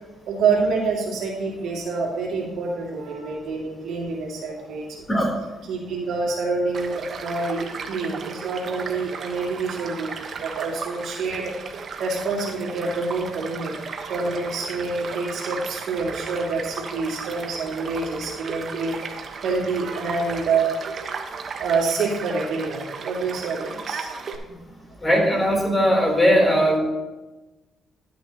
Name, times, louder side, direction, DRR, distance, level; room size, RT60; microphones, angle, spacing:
voice 1, 0.3-5.1 5.7-13.7 14.1-21.2 21.6-24.4, right 4 dB, 75° right, -4 dB, 2.4 m, -27 dB
Child speech kid speaking / Stream / Car passing by, 6.7-24.4, right 5 dB, 50° right, 1.2 m, -35 dB
voice 2, 25.0-26.8, equal, 20° left, -1 dB, 3.6 m, -19 dB
12.5 x 9.1 x 3.0 m, 1.1 s
cardioid pair, 90°, 0 cm